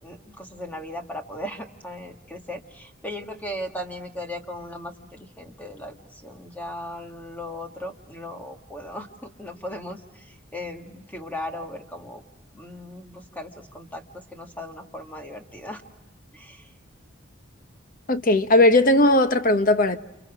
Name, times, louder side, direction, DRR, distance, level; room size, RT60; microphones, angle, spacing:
voice 1, 0.0-12.2 12.5-15.8 16.3-16.7, left 1 dB, 10° left, 1.8 m, -37 dB
voice 2, 18.1-20.0, left 1 dB, 40° left, 0.9 m, -18 dB
29.5 x 29.0 x 6.1 m
head